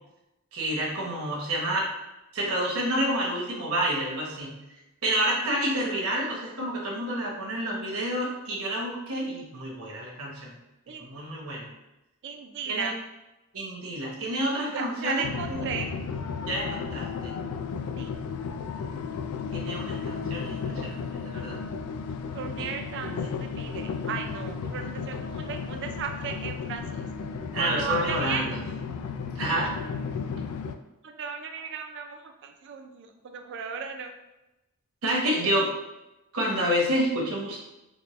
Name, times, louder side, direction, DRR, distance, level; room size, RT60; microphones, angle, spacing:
voice 1, 0.5-1.9 2.3-4.6 5.0-10.5 11.0-11.7 12.7-12.9 13.5-15.6 16.4-17.3 19.5-21.6 22.6-22.7 23.0-23.3 27.5-28.5 29.3-29.7 35.0-35.7 36.3-37.6, right 1 dB, 70° right, -3 dB, 1.0 m, -29 dB
voice 2, 5.4-5.9 10.9-11.1 12.2-12.9 14.7-15.9 18.0-18.1 22.3-27.1 27.6-28.5 29.6-29.7 31.0-34.1 35.4-35.6, right 6 dB, 55° right, 5 dB, 0.4 m, -35 dB
sound 1, 15.2-30.7, left 5 dB, 90° left, 0.3 m, -34 dB
4.2 x 2.2 x 3.1 m, 0.97 s
head